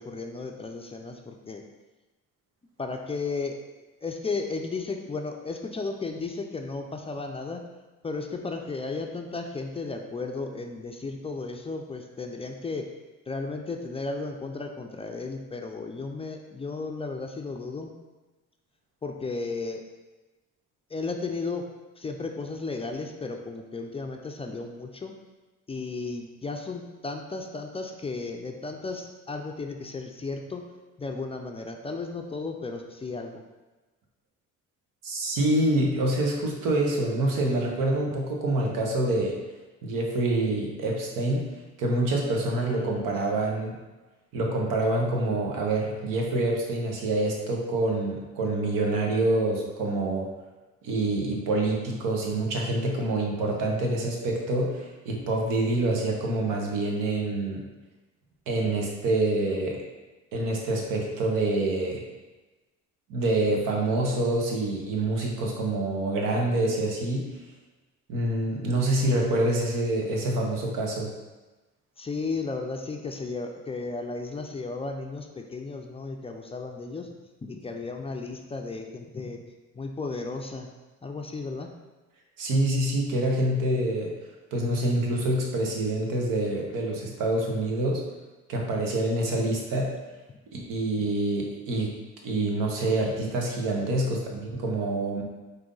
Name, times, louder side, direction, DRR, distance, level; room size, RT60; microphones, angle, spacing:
voice 1, 0.0-1.6 2.8-3.6 4.0-7.6 8.0-12.9 13.3-17.9 19.0-19.8 20.9-25.1 25.7-30.7 31.0-33.4 42.7-43.1 72.0-79.4 79.7-80.7 81.0-81.7 90.3-90.4, left 3 dB, 20° left, 3 dB, 0.3 m, -34 dB
voice 2, 35.0-39.4 39.8-41.5 41.8-43.8 44.3-50.3 50.8-57.6 58.5-59.8 60.3-62.0 63.1-67.3 68.1-71.1 82.4-84.1 84.5-88.1 88.5-89.9 90.5-91.9 92.2-95.2, right 2 dB, 85° right, 0 dB, 1.0 m, -26 dB
5.0 x 2.7 x 3.8 m, 1.2 s
cardioid pair, 95°, 31 cm